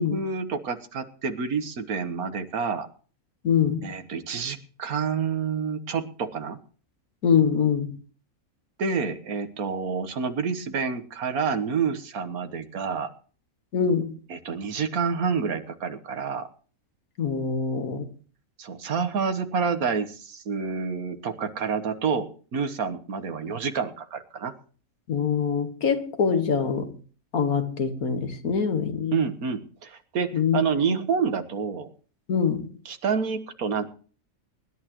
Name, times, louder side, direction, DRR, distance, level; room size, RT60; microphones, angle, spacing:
voice 1, 0.0-2.9 3.8-6.6 8.8-13.1 14.3-16.5 18.6-24.5 29.1-31.9 32.9-33.9, right 5 dB, 75° right, 1.7 m, -28 dB
voice 2, 3.4-3.9 7.2-8.0 13.7-14.2 17.2-18.1 25.1-26.9 27.3-29.2 30.3-30.6 30.9-31.0 32.3-32.7, left 6 dB, 75° left, 1.9 m, -24 dB
24.0 x 11.0 x 3.0 m
omnidirectional pair, 1.5 m